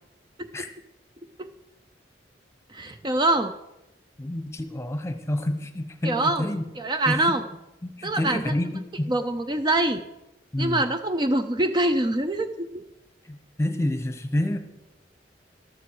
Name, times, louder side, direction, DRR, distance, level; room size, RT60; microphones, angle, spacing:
voice 1, 2.7-3.5 6.0-6.5 6.8-7.4 8.0-8.4 9.1-10.0 10.6-12.7, right 2 dB, 25° right, 8 dB, 0.5 m, -24 dB
voice 2, 4.2-6.6 7.1-7.4 7.8-9.1 10.5-10.8 13.3-14.6, left 1 dB, 15° left, 7 dB, 1.0 m, -28 dB
14.0 x 12.0 x 4.8 m, 0.96 s
head